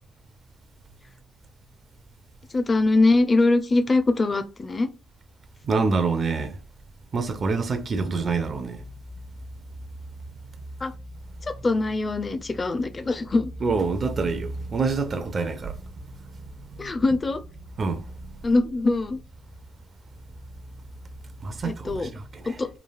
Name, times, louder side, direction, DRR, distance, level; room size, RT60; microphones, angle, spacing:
voice 1, 2.5-4.9 10.8-10.9 11.5-13.5 16.8-17.4 18.4-19.2 21.6-22.1 22.5-22.7, left 2 dB, 30° left, 0.4 m, -22 dB
voice 2, 5.6-6.6 7.1-8.8 13.6-15.9 16.2-16.3 16.8-16.9 17.8-18.3 21.4-22.6, right 4 dB, 45° right, 0.4 m, -27 dB
3.2 x 2.3 x 2.3 m
cardioid pair, 90°, 0 cm